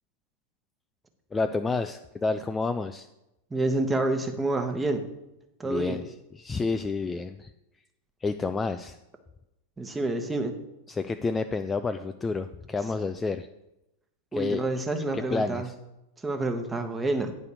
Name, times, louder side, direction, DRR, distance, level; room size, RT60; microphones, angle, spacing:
voice 1, 1.3-3.1 5.6-7.5 8.2-9.0 10.9-13.5 14.3-14.6 15.0-15.7, left 4 dB, 15° left, 8 dB, 0.3 m, -30 dB
voice 2, 3.5-5.1 5.6-6.0 9.8-10.5 14.3-15.7 16.2-17.3, right 2 dB, 10° right, 5 dB, 1.1 m, -28 dB
9.3 x 4.1 x 6.8 m, 0.92 s
figure-of-eight pair, 90°, 0 cm